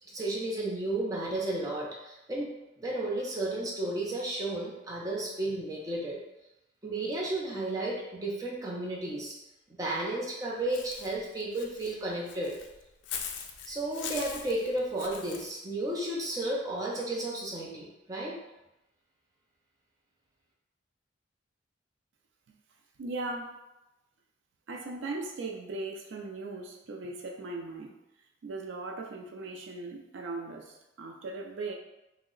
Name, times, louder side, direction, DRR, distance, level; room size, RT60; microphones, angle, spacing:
voice 1, 0.1-2.5 2.8-6.2 6.8-9.4 9.8-12.6 13.7-18.3, right 1 dB, 20° right, -4 dB, 0.5 m, -33 dB
Walk footsteps / Bird, 10.7-15.5, left 7 dB, 65° left, 0.3 m, -41 dB
voice 2, 23.0-23.5 24.7-27.9 28.4-31.7, right 3 dB, 75° right, 1 dB, 0.4 m, -38 dB
2.7 x 2.0 x 3.7 m, 0.94 s
head